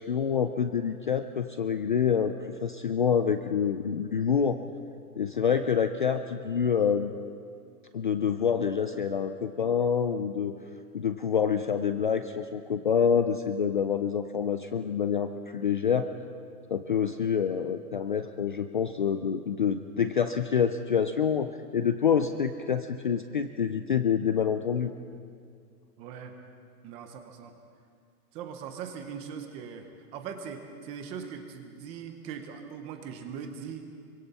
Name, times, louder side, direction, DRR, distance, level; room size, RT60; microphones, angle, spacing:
voice 1, 0.0-2.3 2.6-4.6 5.2-7.1 7.9-10.5 10.9-16.1 16.7-24.9, left 7 dB, 35° left, 9 dB, 0.4 m, -27 dB
voice 2, 26.0-26.3 26.8-27.5 28.3-29.9 30.1-33.8, right 7 dB, 15° right, 6 dB, 0.7 m, -40 dB
25.5 x 24.5 x 4.2 m, 2.2 s
hypercardioid pair, 165°, 47 cm